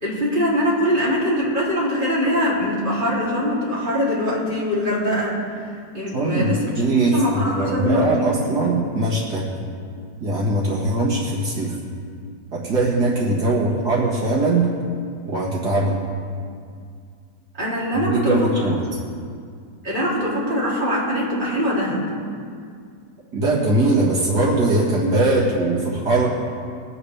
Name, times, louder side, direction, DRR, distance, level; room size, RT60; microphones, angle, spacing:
voice 1, 0.0-6.7 7.1-8.3 17.5-18.6 19.8-22.0, equal, 30° right, -7 dB, 3.2 m, -22 dB
voice 2, 6.1-9.5 10.2-11.8 12.5-14.7 15.3-16.0 17.9-18.8 23.3-26.3, right 2 dB, 75° right, -5 dB, 2.3 m, -21 dB
21.5 x 8.6 x 3.4 m, 2.2 s
omnidirectional pair, 1.8 m